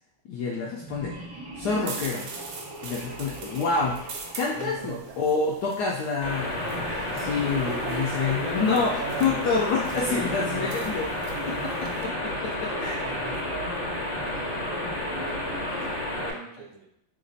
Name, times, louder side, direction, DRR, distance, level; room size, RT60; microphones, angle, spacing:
voice 1, 0.2-1.2 1.6-2.3 2.8-4.1 4.3-11.1 11.4-11.5 11.8-13.0, left 4 dB, 80° left, -2 dB, 0.9 m, -28 dB
sound 1, 0.8-5.6 6.5-8.8 9.4-16.2, right 1 dB, 30° right, 0.6 m, -42 dB
sound 2, 1.6-12.0, right 4 dB, 70° right, 1.1 m, -44 dB
voice 2, 4.5-5.2 7.4-10.8 11.4-16.9, right 6 dB, 85° right, 3 dB, 1.4 m, -39 dB
sound 3, 6.2-16.3, left 1 dB, 60° left, 1.1 m, -31 dB
3.3 x 2.9 x 3.9 m, 0.76 s
omnidirectional pair, 2.2 m